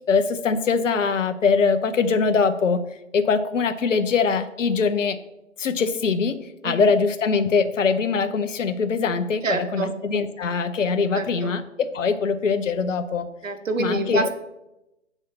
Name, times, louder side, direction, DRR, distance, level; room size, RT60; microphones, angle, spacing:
voice 1, 0.1-2.8 3.1-5.2 5.6-6.4 6.6-13.3 13.8-14.3, left 5 dB, 75° left, 9 dB, 0.8 m, -22 dB
voice 2, 9.4-9.9 11.1-11.5 13.4-14.3, right 3 dB, 80° right, 9 dB, 1.3 m, -27 dB
7.9 x 6.3 x 5.8 m, 0.92 s
hypercardioid pair, 150°, 38 cm